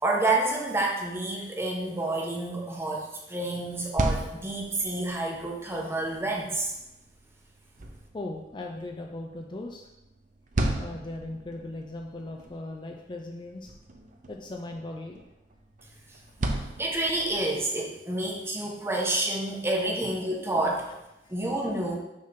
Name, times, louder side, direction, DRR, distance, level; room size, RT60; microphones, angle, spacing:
voice 1, 0.0-6.7 16.8-20.8 21.3-22.0, right 2 dB, 15° right, -1 dB, 1.1 m, -29 dB
sound 1, 3.7-17.6, right 1 dB, 45° right, 0.7 m, -37 dB
voice 2, 8.1-9.9 10.8-13.7 14.3-15.3 20.0-20.2 21.2-21.3, left 2 dB, 25° left, 2 dB, 0.5 m, -38 dB
6.3 x 3.8 x 5.7 m, 0.93 s
head